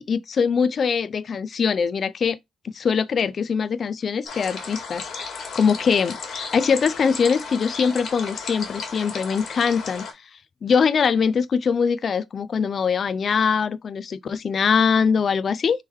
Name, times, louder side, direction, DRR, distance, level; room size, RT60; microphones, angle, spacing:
voice 1, 0.0-2.4 2.7-10.0 10.6-15.9, left 6 dB, 50° left, 0.4 m, -22 dB
sound 1, 4.3-10.1, left 5 dB, 65° left, 1.8 m, -34 dB
3.6 x 3.0 x 4.6 m
cardioid pair, 90°, 0 cm